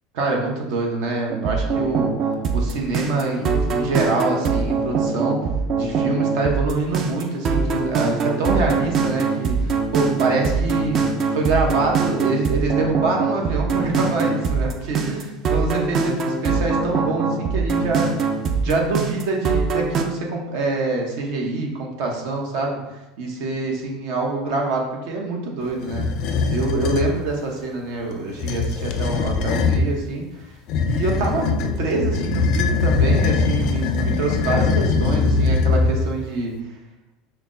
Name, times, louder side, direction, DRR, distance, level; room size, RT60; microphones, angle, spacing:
voice 1, 0.2-5.4 5.8-22.8 23.2-26.0 26.5-30.3 30.8-36.5, right 3 dB, 70° right, 0 dB, 0.8 m, -25 dB
sound 1, 1.3-20.0, right 5 dB, 40° right, 0.4 m, -23 dB
sound 2, 25.8-27.1 28.3-29.9 30.7-36.2, left 4 dB, 55° left, 0.3 m, -21 dB
5.6 x 2.1 x 2.5 m, 0.96 s
supercardioid pair, 125°, 0 cm